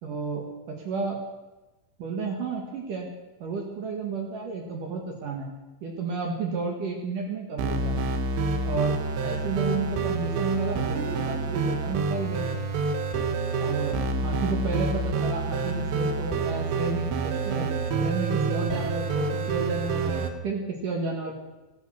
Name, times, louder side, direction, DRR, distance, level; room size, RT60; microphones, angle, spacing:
voice 1, 0.0-1.2 2.0-3.1 3.4-5.5 5.8-7.9 8.6-9.0 9.2-12.5 13.6-17.1 17.4-17.7 18.0-21.4, right 4 dB, 55° right, 1 dB, 2.6 m, -32 dB
sound 1, 7.6-20.3, right 4 dB, 75° right, 3.2 m, -28 dB
15.0 x 12.0 x 6.4 m, 1.1 s
omnidirectional pair, 5.7 m